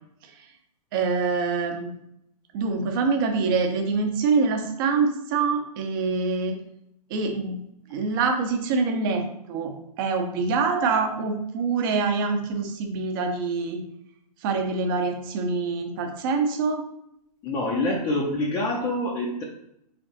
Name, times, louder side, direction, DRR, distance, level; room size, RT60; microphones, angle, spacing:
voice 1, 0.9-1.9 2.5-6.5 7.1-7.6 7.9-13.8 14.4-16.8, right 4 dB, 30° right, 3 dB, 0.8 m, -25 dB
voice 2, 17.4-19.4, left 2 dB, 15° left, -3 dB, 0.6 m, -26 dB
3.9 x 3.4 x 3.9 m, 0.75 s
figure-of-eight pair, 120°, 21 cm